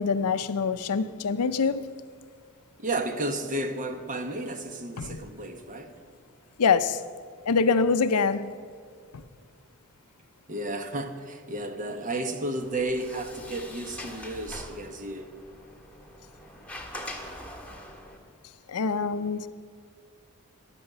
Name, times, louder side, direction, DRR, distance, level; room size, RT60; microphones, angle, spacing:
voice 1, 0.0-1.8 5.0-5.2 6.6-7.0 7.5-8.5 18.7-19.5, left 5 dB, 85° left, 0.6 m, -24 dB
voice 2, 2.8-6.0 10.5-15.3, right 2 dB, 35° right, 1.1 m, -32 dB
Sliding door, 12.6-18.2, left 1 dB, 5° left, 1.6 m, -43 dB
14.5 x 10.5 x 6.8 m
head